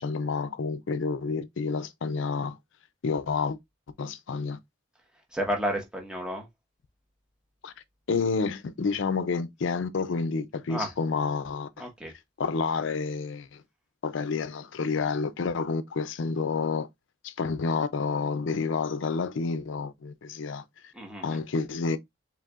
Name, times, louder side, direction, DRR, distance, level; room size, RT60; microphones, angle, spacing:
voice 1, 0.0-2.6 3.0-3.6 4.0-4.6 7.6-7.7 8.1-11.8 12.4-13.6 14.0-16.9 17.2-20.6 21.2-22.0, left 4 dB, 70° left, 0.5 m, -29 dB
voice 2, 5.3-6.5 10.7-10.9 11.8-12.1 20.9-21.4, equal, 5° right, 1.2 m, -31 dB
4.5 x 3.4 x 2.4 m
head